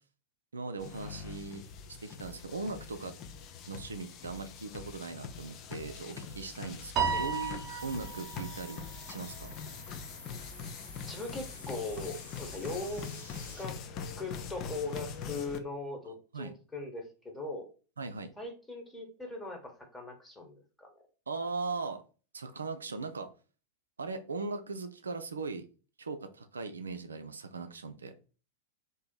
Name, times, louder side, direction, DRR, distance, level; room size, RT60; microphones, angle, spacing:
voice 1, 0.5-1.6 2.0-3.1 3.7-9.5 16.3-16.5 18.0-18.3 21.3-22.0 22.3-23.3 24.0-25.7 26.0-28.1, right 3 dB, 75° right, 8 dB, 0.3 m, -39 dB
sound 1, 0.8-15.6, left 6 dB, 35° left, 0.4 m, -43 dB
Piano, 7.0-9.4, right 6 dB, 30° right, 0.8 m, -34 dB
sound 2, 7.7-13.7, left 2 dB, 70° left, 1.1 m, -50 dB
voice 2, 11.1-13.1 13.6-13.8 14.2-17.7 18.4-20.9, left 2 dB, 10° left, 2 dB, 1.0 m, -40 dB
2.9 x 2.7 x 3.7 m, 0.37 s
figure-of-eight pair, 90°, 0 cm